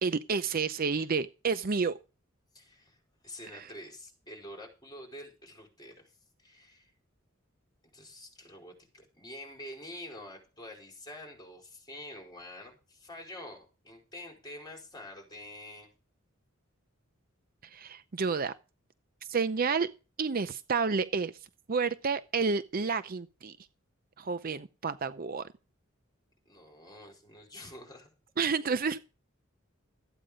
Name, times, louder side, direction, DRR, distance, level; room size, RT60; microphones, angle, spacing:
voice 1, 0.0-2.0 3.5-3.6 17.7-18.5 19.3-19.9 20.2-21.3 21.7-23.5 24.2-25.5 28.4-29.0, right 5 dB, 45° right, 0.6 m, -30 dB
voice 2, 2.5-3.0 3.2-6.1 6.4-6.9 7.9-15.9 26.4-28.1, left 1 dB, 20° left, 4.6 m, -47 dB
14.0 x 8.9 x 5.1 m
head